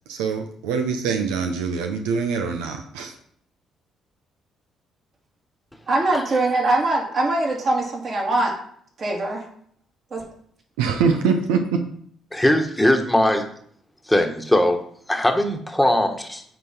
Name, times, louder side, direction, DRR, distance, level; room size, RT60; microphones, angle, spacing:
voice 1, 0.1-3.2 10.8-11.8, right 5 dB, 85° right, 5 dB, 0.6 m, -24 dB
voice 2, 5.9-8.5 9.0-9.4 10.1-10.2, right 2 dB, 50° right, -2 dB, 2.7 m, -22 dB
voice 3, 12.3-13.4 14.1-14.8 15.1-16.4, left 1 dB, 5° left, 5 dB, 1.3 m, -20 dB
8.9 x 3.9 x 4.4 m, 0.62 s
supercardioid pair, 60°, 0 cm